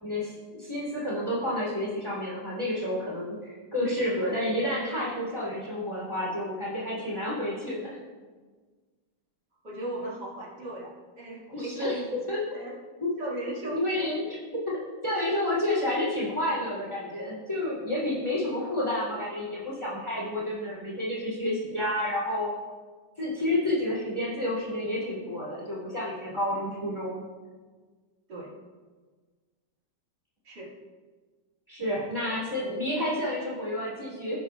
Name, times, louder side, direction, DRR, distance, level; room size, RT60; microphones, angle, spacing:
voice 1, 0.0-8.0 11.5-12.0 12.3-12.7 13.0-13.1 13.7-14.8 15.0-22.5 23.2-27.2 31.7-34.4, left 1 dB, 15° left, -7 dB, 2.9 m, -30 dB
voice 2, 9.6-12.0 12.5-12.7 13.2-14.1 28.3-28.5 30.5-30.7, right 1 dB, 70° right, -6 dB, 2.6 m, -37 dB
16.0 x 7.8 x 2.3 m, 1.4 s
omnidirectional pair, 1.9 m